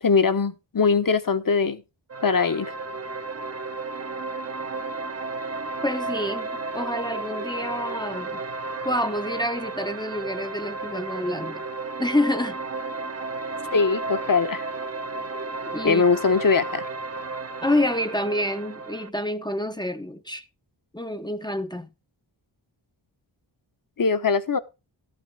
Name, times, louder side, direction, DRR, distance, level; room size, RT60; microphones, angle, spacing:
voice 1, 0.0-1.8 2.2-2.7 13.7-14.6 15.8-16.8 24.0-24.6, left 5 dB, 45° left, 1.0 m, -21 dB
sound 1, 2.1-19.1, right 3 dB, 30° right, 0.8 m, -33 dB
voice 2, 5.8-8.4 8.8-11.6 12.0-12.6 15.7-16.0 17.6-20.5 20.9-21.9, left 1 dB, 10° left, 0.7 m, -27 dB
14.0 x 8.9 x 3.5 m
wide cardioid pair, 100°, 46 cm